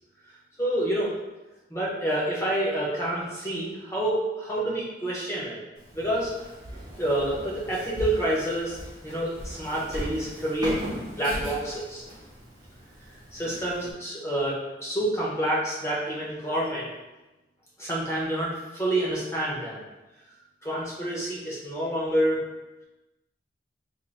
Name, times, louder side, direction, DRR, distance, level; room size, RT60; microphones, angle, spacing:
voice 1, 0.6-1.1 1.7-5.6 5.9-6.3 7.0-8.8 9.0-10.8 11.2-12.0 13.3-16.9 17.8-19.8 20.6-22.5, right 1 dB, 15° left, -7 dB, 0.9 m, -28 dB
Walk footsteps, 5.7-13.9, equal, 25° right, 0.8 m, -39 dB
2.7 x 2.7 x 4.1 m, 1.1 s
head